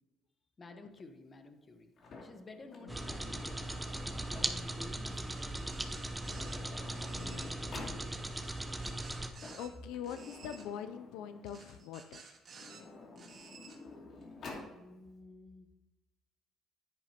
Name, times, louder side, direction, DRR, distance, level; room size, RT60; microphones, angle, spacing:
voice 1, 0.6-1.9 2.2-3.8 4.3-6.2 7.4-8.3 14.7-15.7, left 2 dB, 30° left, 7 dB, 1.1 m, -53 dB
Sliding door, 2.0-4.8 5.8-5.9 6.1-8.0 9.1-11.7 12.4-14.7, left 3 dB, 55° left, 2.5 m, -50 dB
sound 1, 2.9-9.3, right 1 dB, 10° right, 0.7 m, -39 dB
sound 2, 5.2-6.6 6.9-7.5 8.3-9.7 10.0-10.7 11.5-12.8 13.2-13.8, right 5 dB, 45° right, 2.0 m, -54 dB
voice 2, 9.2-12.2, left 9 dB, 90° left, 10 dB, 0.4 m, -44 dB
10.5 x 9.3 x 2.9 m, 1.1 s
cardioid pair, 105°, 0 cm